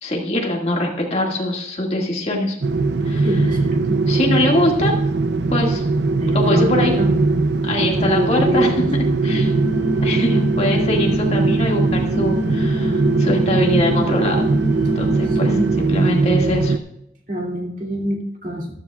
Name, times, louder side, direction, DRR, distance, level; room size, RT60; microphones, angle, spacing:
voice 1, 0.0-2.6 3.1-3.3 4.1-4.9 5.5-5.8 6.3-6.9 7.6-8.7 9.2-9.5 10.0-14.5 15.0-16.8, left 1 dB, 35° left, 0 dB, 1.9 m, -22 dB
sound 1, 2.6-16.8, right 3 dB, 65° right, 0.6 m, -20 dB
voice 2, 3.2-4.0 6.2-7.1 7.8-8.8 15.4-15.8 17.3-18.8, equal, 45° right, 0 dB, 2.4 m, -24 dB
sound 2, 9.3-15.7, left 1 dB, 10° right, 2.4 m, -26 dB
14.0 x 13.0 x 2.4 m, 0.79 s
head